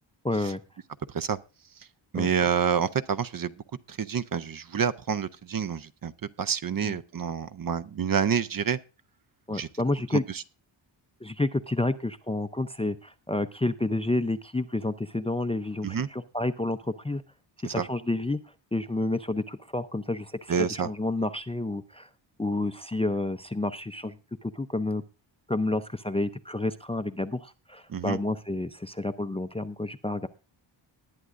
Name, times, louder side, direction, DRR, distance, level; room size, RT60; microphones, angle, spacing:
voice 1, 0.2-0.6 2.1-2.3 6.8-7.0 9.5-10.2 11.2-17.2 17.6-18.4 18.7-22.1 22.4-24.2 24.4-25.0 25.5-30.3, left 2 dB, 15° left, 0.4 m, -30 dB
voice 2, 2.1-3.5 3.9-6.1 6.4-8.8 9.5-9.7 10.1-10.2 15.8-16.1 17.6-17.9 20.5-20.9 27.9-28.2, right 7 dB, 45° right, 0.6 m, -28 dB
19.5 x 9.2 x 2.5 m
wide cardioid pair, 100°, 49 cm